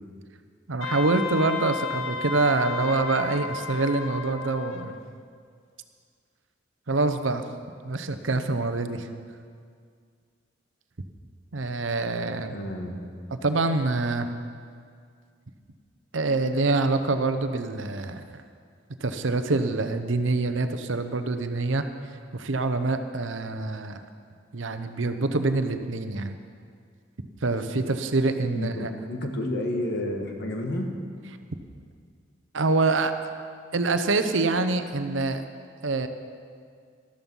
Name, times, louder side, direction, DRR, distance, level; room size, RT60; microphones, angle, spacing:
voice 1, 0.7-5.0 6.9-7.4 7.8-9.1 11.5-12.6 13.3-14.3 16.1-18.4 19.0-21.8 22.3-24.0 24.5-26.4 27.4-28.9 32.5-33.1 33.7-35.4 35.8-36.1, right 3 dB, 70° right, 9 dB, 0.8 m, -25 dB
Wind instrument woodwind instrument, 0.8-5.0, left 5 dB, 80° left, 0.7 m, -33 dB
voice 2, 12.5-13.0 28.5-30.9, left 1 dB, 60° left, 2 dB, 1.6 m, -30 dB
13.0 x 13.0 x 5.5 m, 2.1 s
head